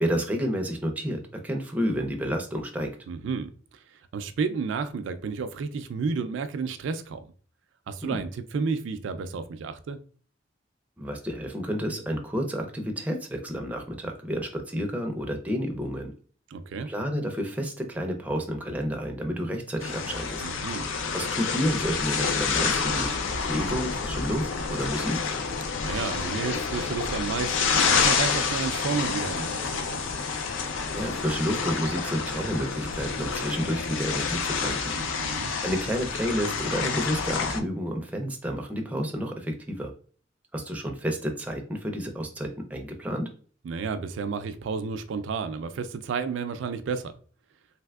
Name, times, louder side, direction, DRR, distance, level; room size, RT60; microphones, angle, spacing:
voice 1, 0.0-2.9 8.0-8.2 11.0-16.1 16.9-20.4 21.1-23.2 23.5-25.2 30.9-34.9 35.6-39.9 40.5-43.3, equal, 10° right, 0.4 m, -30 dB
voice 2, 3.1-3.5 3.9-7.3 7.9-10.0 16.5-16.9 20.4-20.9 25.8-30.0 34.9-35.5 43.6-47.1, right 5 dB, 75° right, 0.3 m, -31 dB
sound 1, 19.8-37.6, left 5 dB, 90° left, 0.4 m, -28 dB
3.3 x 2.7 x 2.3 m
head